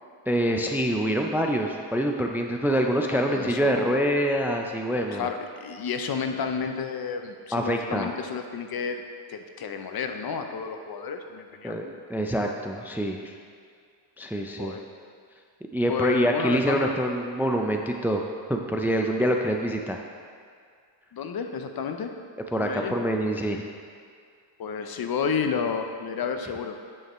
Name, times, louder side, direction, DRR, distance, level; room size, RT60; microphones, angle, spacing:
voice 1, 0.3-5.3 7.5-8.1 11.6-13.3 14.2-14.8 15.7-18.2 18.5-20.0 22.5-23.6, equal, 5° right, 2 dB, 0.4 m, -25 dB
voice 2, 3.1-4.0 5.1-9.0 9.3-11.8 14.6-14.8 15.9-17.0 21.1-22.1 22.6-22.9 24.6-26.7, left 6 dB, 55° left, 6 dB, 0.7 m, -31 dB
9.6 x 6.6 x 3.1 m, 2.2 s
cardioid pair, 105°, 45 cm